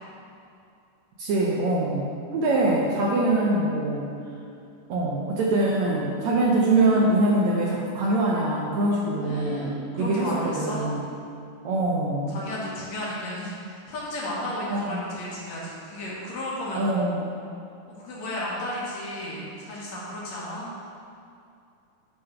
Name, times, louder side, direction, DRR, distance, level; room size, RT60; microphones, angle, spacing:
voice 1, 1.2-4.1 4.9-11.0 11.6-12.3 14.7-15.0 16.8-17.3, right 2 dB, 70° right, -3 dB, 1.8 m, -24 dB
voice 2, 9.2-9.7 9.9-10.9 12.3-17.0 17.9-20.7, left 1 dB, 60° left, -6 dB, 2.3 m, -33 dB
8.7 x 3.7 x 5.7 m, 2.5 s
omnidirectional pair, 3.8 m